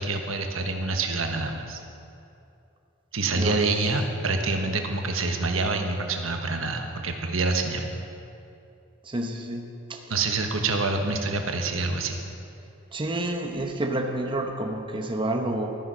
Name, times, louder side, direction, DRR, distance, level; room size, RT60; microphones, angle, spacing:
voice 1, 0.0-1.8 3.1-7.9 10.1-12.2, right 3 dB, 90° right, 4 dB, 1.3 m, -26 dB
voice 2, 3.3-3.6 9.0-10.0 12.9-15.7, right 1 dB, 25° right, 3 dB, 0.9 m, -29 dB
13.0 x 10.0 x 6.3 m, 2.7 s
head